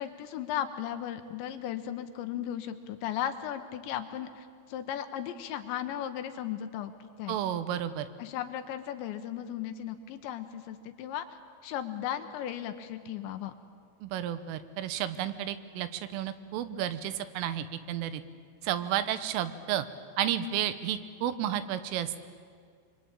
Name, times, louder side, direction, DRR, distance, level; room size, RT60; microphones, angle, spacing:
voice 1, 0.0-7.4 8.2-11.3 11.6-13.5, left 10 dB, 75° left, 8 dB, 3.0 m, -36 dB
voice 2, 7.3-8.1 14.0-18.2 18.6-19.9 20.2-22.2, right 11 dB, 80° right, 12 dB, 3.6 m, -32 dB
25.5 x 24.0 x 8.9 m, 2.1 s
omnidirectional pair, 5.7 m